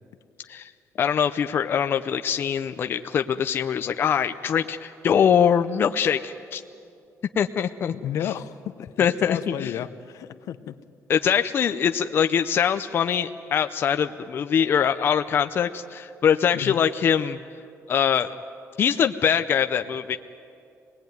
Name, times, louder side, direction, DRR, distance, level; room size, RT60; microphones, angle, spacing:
voice 1, 1.0-6.6 7.4-7.9 8.2-8.3 9.0-9.8 11.1-17.4 17.9-18.3 18.8-20.2, left 8 dB, 40° left, 8 dB, 0.5 m, -23 dB
voice 2, 8.0-10.8 16.5-16.8, left 10 dB, 70° left, 11 dB, 0.8 m, -32 dB
26.0 x 19.5 x 9.3 m, 2.6 s
cardioid pair, 170°, 6 cm